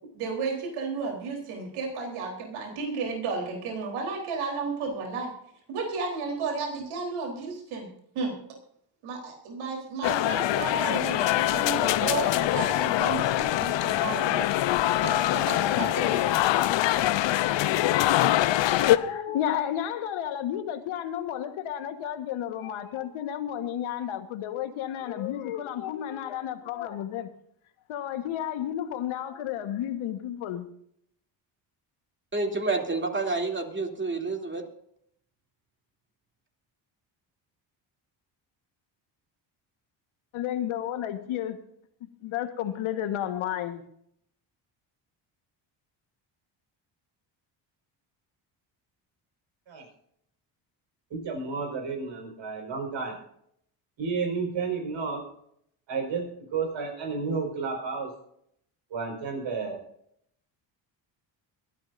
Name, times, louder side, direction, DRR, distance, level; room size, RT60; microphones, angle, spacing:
voice 1, 0.1-5.3 5.7-7.9 8.1-8.4 9.0-14.5 15.0-16.3, right 4 dB, 90° right, 3.9 m, -33 dB
sound 1, 10.0-19.0, left 14 dB, 65° left, 0.8 m, -24 dB
voice 2, 18.8-27.3 27.9-30.6 40.3-41.6 42.2-43.8, left 11 dB, 80° left, 1.5 m, -32 dB
voice 3, 32.3-34.6, right 3 dB, 25° right, 2.9 m, -29 dB
voice 4, 51.1-53.2 54.0-55.2 55.9-56.2 56.5-58.1 58.9-59.8, right 5 dB, 65° right, 5.1 m, -31 dB
23.0 x 12.0 x 2.6 m
cardioid pair, 90°, 48 cm